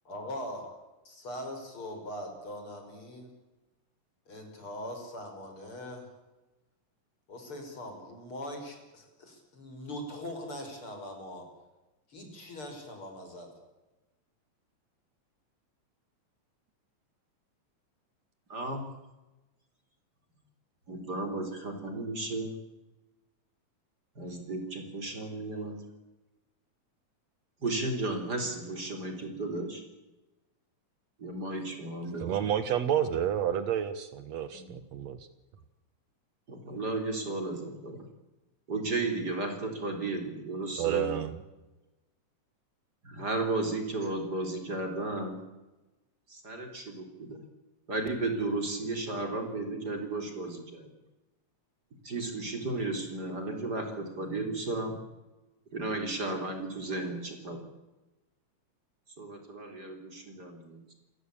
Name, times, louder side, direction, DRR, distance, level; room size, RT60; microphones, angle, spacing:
voice 1, 0.1-0.6 1.0-3.3 4.3-6.1 7.3-11.4 12.1-13.5, left 1 dB, 45° left, 4 dB, 6.2 m, -41 dB
voice 2, 18.5-18.8 20.9-22.5 24.2-25.7 27.6-29.8 31.2-32.4 34.5-34.8 36.5-38.0 38.7-41.2 43.0-45.4 46.3-47.4 47.9-50.9 52.0-54.9 55.7-57.6 59.2-60.9, right 2 dB, 35° right, 4 dB, 4.1 m, -34 dB
voice 3, 32.2-35.2 40.8-41.3, right 9 dB, 70° right, 12 dB, 2.3 m, -29 dB
29.0 x 16.0 x 8.6 m, 1.1 s
omnidirectional pair, 3.4 m